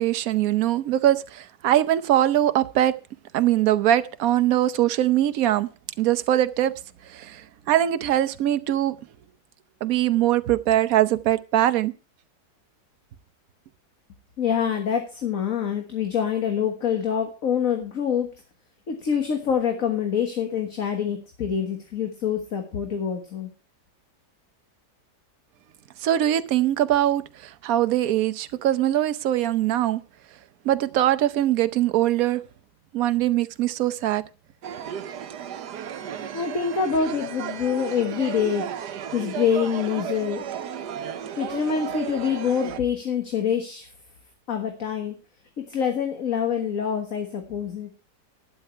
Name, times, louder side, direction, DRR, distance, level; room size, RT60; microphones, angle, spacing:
voice 1, 0.0-2.9 3.3-5.7 6.0-6.7 7.1-8.9 9.8-11.9 26.0-30.0 30.6-32.4 32.9-34.2, right 12 dB, 65° right, 1.2 m, -22 dB
voice 2, 14.4-18.3 18.9-23.5 36.3-38.7 39.1-40.4 41.4-43.9 44.5-45.2 45.6-47.9, left 7 dB, 55° left, 1.9 m, -26 dB
sound 1, 34.6-42.8, right 8 dB, 80° right, 1.5 m, -34 dB
12.0 x 10.0 x 4.5 m
omnidirectional pair, 1.8 m